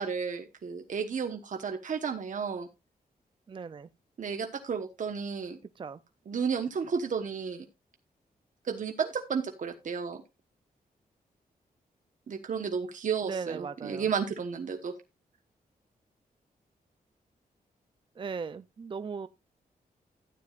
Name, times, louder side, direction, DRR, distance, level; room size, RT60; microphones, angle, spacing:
voice 1, 0.0-2.7 4.2-5.6 6.3-7.6 8.6-10.2 12.3-14.9, right 6 dB, 55° right, 1.1 m, -32 dB
voice 2, 3.5-3.9 5.8-6.0 13.2-14.1 18.2-19.3, right 5 dB, 35° right, 0.4 m, -37 dB
13.0 x 9.3 x 2.4 m
wide cardioid pair, 105°, 15 cm